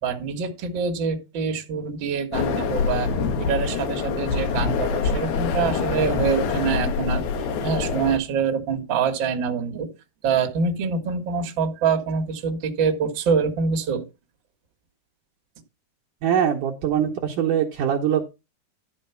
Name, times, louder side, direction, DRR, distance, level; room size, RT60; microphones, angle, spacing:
voice 1, 0.0-7.2 7.5-9.9 10.2-14.0, right 6 dB, 50° right, 5 dB, 1.5 m, -25 dB
sound 1, 2.3-8.2, left 5 dB, 75° left, 3.2 m, -25 dB
voice 2, 16.2-18.2, right 9 dB, 70° right, 0 dB, 2.2 m, -22 dB
12.5 x 4.6 x 5.7 m, 0.27 s
omnidirectional pair, 4.6 m